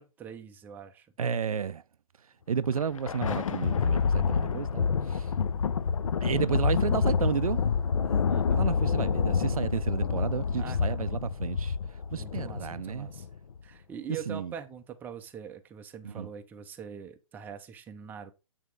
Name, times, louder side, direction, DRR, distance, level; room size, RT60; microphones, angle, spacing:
voice 1, 0.0-1.1 8.3-8.7 10.6-11.1 12.2-13.3 13.6-18.3, right 7 dB, 10° right, 0.5 m, -43 dB
voice 2, 1.2-1.8 2.5-5.3 6.2-7.6 8.0-8.2 8.5-11.8 12.1-13.1 14.3-14.5 16.0-16.3, right 7 dB, 75° right, 0.5 m, -32 dB
Thunder, 2.6-13.4, left 6 dB, 65° left, 0.6 m, -28 dB
8.3 x 3.6 x 4.6 m
figure-of-eight pair, 130°, 18 cm